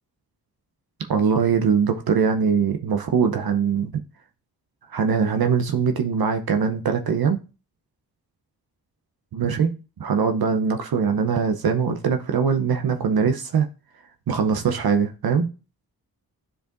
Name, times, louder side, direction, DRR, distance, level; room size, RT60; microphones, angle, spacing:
voice 1, 1.1-3.9 4.9-7.4 9.3-9.7 10.0-13.7 14.3-15.5, right 6 dB, 65° right, 0.8 m, -22 dB
10.0 x 4.8 x 2.6 m
supercardioid pair, 40°, 39 cm